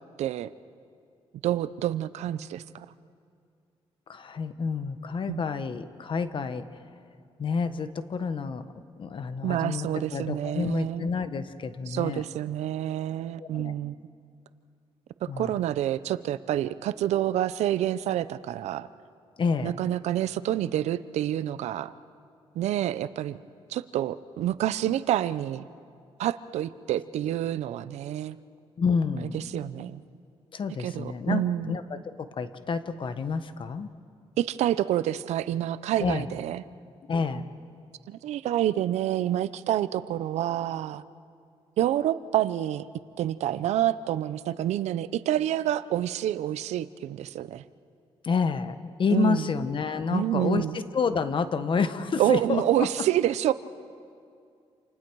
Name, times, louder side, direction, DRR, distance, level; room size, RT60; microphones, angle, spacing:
voice 1, 0.2-0.5 1.4-2.9 5.3-5.4 9.4-11.1 11.9-14.0 15.2-18.9 19.6-21.9 22.6-23.4 23.7-25.6 26.2-28.4 29.3-30.0 30.8-31.7 34.4-36.6 38.1-41.0 41.8-42.9 43.2-47.6 49.1-49.5 50.1-50.8 52.2-53.5, right 12 dB, 90° right, 15 dB, 0.6 m, -28 dB
voice 2, 4.1-6.6 7.4-8.6 9.0-12.2 13.4-13.7 15.3-15.6 19.4-19.7 28.8-29.4 30.5-33.9 36.0-36.3 37.1-37.5 48.2-52.9, left 5 dB, 50° left, 10 dB, 1.2 m, -29 dB
28.5 x 28.0 x 4.7 m, 2.3 s
cardioid pair, 90°, 11 cm